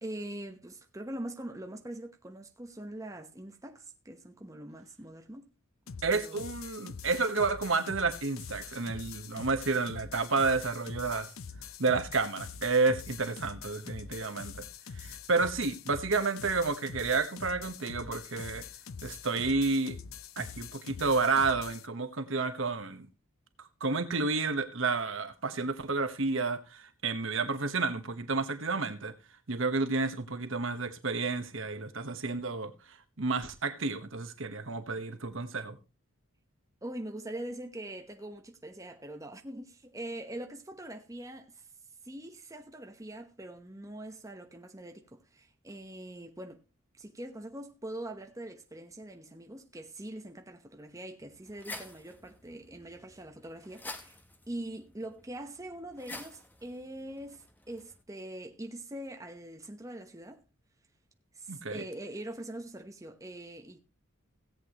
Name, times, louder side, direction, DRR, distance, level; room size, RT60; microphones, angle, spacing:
voice 1, 0.0-5.5 6.1-6.5 36.8-41.7 42.0-46.6 47.0-54.2 54.5-60.4 61.3-63.8, right 1 dB, 15° right, 1.1 m, -43 dB
sound 1, 5.9-21.9, left 6 dB, 70° left, 0.6 m, -45 dB
voice 2, 6.0-11.3 11.8-14.7 15.0-18.6 19.0-20.0 20.4-23.1 23.8-29.1 29.5-32.7 33.2-35.8 61.5-61.8, right 4 dB, 65° right, 1.1 m, -30 dB
sound 2, 51.2-58.0, left 2 dB, 10° left, 0.9 m, -49 dB
17.0 x 8.3 x 3.0 m
head